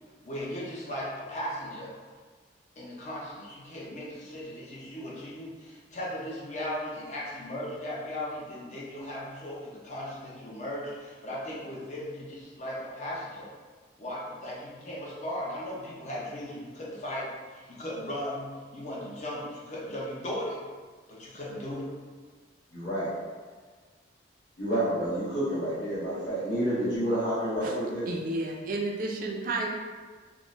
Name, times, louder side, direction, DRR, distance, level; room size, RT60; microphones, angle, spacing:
voice 1, 0.2-1.9 2.8-13.5 14.0-20.6 21.1-21.9, left 1 dB, 35° left, -5 dB, 0.6 m, -37 dB
voice 2, 22.7-23.1 24.6-28.2, right 1 dB, 60° left, -10 dB, 1.0 m, -29 dB
voice 3, 28.1-29.7, right 2 dB, 45° right, 0 dB, 0.4 m, -31 dB
3.6 x 2.0 x 2.5 m, 1.4 s
head